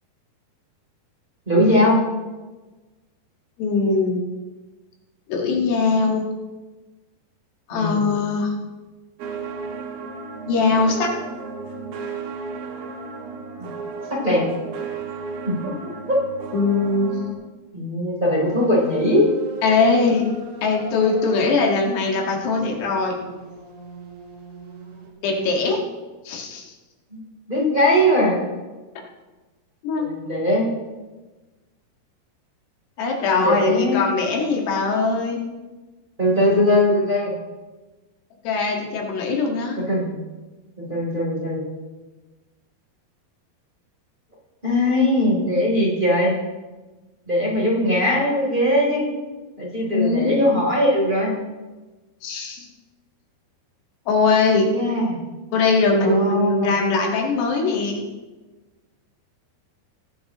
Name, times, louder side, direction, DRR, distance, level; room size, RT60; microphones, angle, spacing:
voice 1, 1.5-2.0 7.7-8.0 13.6-13.7 14.1-14.4 15.5-15.7 16.1-16.2 17.7-19.2 27.1-27.2 27.5-28.4 30.0-30.7 33.4-34.0 36.2-37.3 39.9-40.1 40.8-41.6 44.6-46.3 47.3-49.0 49.6-51.3 54.5-55.2 56.0-56.7, left 1 dB, 15° right, -6 dB, 2.8 m, -20 dB
voice 2, 3.6-4.2 5.3-6.3 7.7-8.5 10.5-11.1 16.5-17.1 19.6-20.3 20.6-23.2 25.2-25.8 26.3-26.7 29.8-30.1 33.0-35.4 38.5-39.8 49.9-50.5 52.2-52.7 54.1-54.7 55.5-58.0, left 4 dB, 90° left, 0 dB, 3.9 m, -21 dB
sound 1, 9.2-17.3, right 4 dB, 70° right, 3.0 m, -34 dB
sound 2, 18.4-25.1, right 3 dB, 55° right, 3.1 m, -40 dB
19.5 x 10.5 x 3.0 m, 1.2 s
omnidirectional pair, 4.7 m